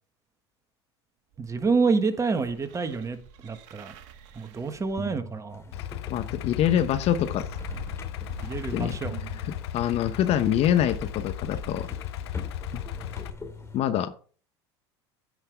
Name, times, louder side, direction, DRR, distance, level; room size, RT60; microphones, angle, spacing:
sound 1, 1.3-6.2 7.0-10.3 11.0-11.1, right 6 dB, 60° right, 1.4 m, -44 dB
voice 1, 1.4-3.2 3.4-3.9 4.3-5.6 8.4-9.2, right 4 dB, 20° right, 1.5 m, -27 dB
sound 2, 5.5-13.8, left 3 dB, 20° left, 2.5 m, -43 dB
Idling, 5.7-13.3, left 12 dB, 75° left, 0.7 m, -36 dB
voice 2, 6.1-7.5 8.7-9.0 9.5-11.9 12.7-12.8 13.7-14.1, left 10 dB, 45° left, 1.0 m, -25 dB
15.5 x 5.7 x 3.5 m
hypercardioid pair, 90°, 14 cm